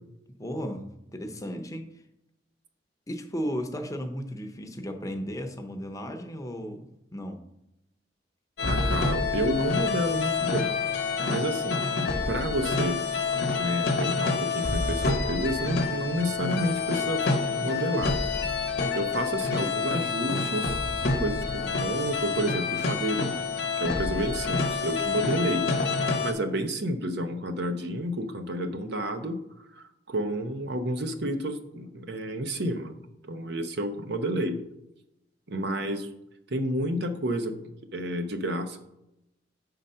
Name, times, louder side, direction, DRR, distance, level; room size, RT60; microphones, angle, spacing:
voice 1, 0.4-1.9 3.1-7.4, equal, 20° left, 6 dB, 0.7 m, -35 dB
sound 1, 8.6-26.3, left 4 dB, 60° left, 1.0 m, -28 dB
voice 2, 8.6-10.7 11.2-13.0 13.4-17.3 17.6-18.2 18.9-20.8 21.0-23.5 23.8-25.7 26.2-29.4 29.8-34.6 35.5-36.1 36.5-37.5 37.9-38.8, right 1 dB, 65° right, 7 dB, 0.8 m, -30 dB
7.4 x 3.9 x 5.5 m, 0.85 s
head